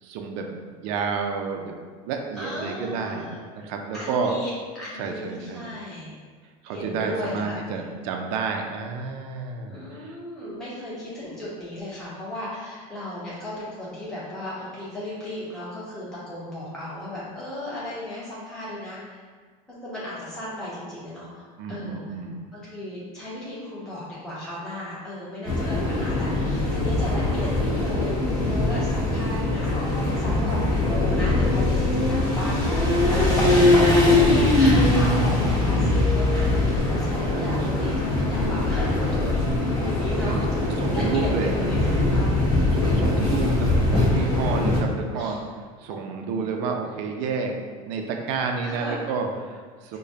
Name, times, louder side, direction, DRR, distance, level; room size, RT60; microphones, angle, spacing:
voice 1, 0.0-1.8 2.0-4.4 5.0-5.7 6.6-10.2 21.6-22.4 29.1-29.4 37.3-37.9 40.3-40.4 40.8-41.5 42.7-45.4 45.8-47.6 47.8-50.0, right 5 dB, 65° right, 3 dB, 0.5 m, -30 dB
voice 2, 2.3-3.3 3.9-4.5 4.7-6.1 6.7-7.9 9.7-19.2 19.7-22.0 22.5-28.1 28.4-29.8 30.2-40.5 40.9-42.3 45.1-45.4 48.6-49.0 49.9-50.0, left 1 dB, 5° left, -11 dB, 1.1 m, -36 dB
sound 1, 25.4-44.8, left 2 dB, 20° left, 1.2 m, -22 dB
4.9 x 2.2 x 2.7 m, 1.5 s
supercardioid pair, 135°, 18 cm